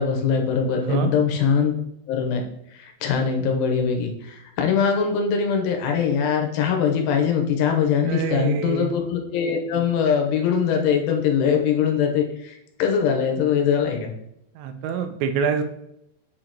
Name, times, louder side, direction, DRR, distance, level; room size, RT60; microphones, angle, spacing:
voice 1, 0.0-1.7 2.1-2.4 2.7-14.1, left 7 dB, 90° left, 3 dB, 3.3 m, -22 dB
voice 2, 8.0-8.9 14.6-15.6, right 7 dB, 85° right, 7 dB, 2.5 m, -25 dB
7.3 x 5.1 x 2.9 m, 0.77 s
omnidirectional pair, 5.6 m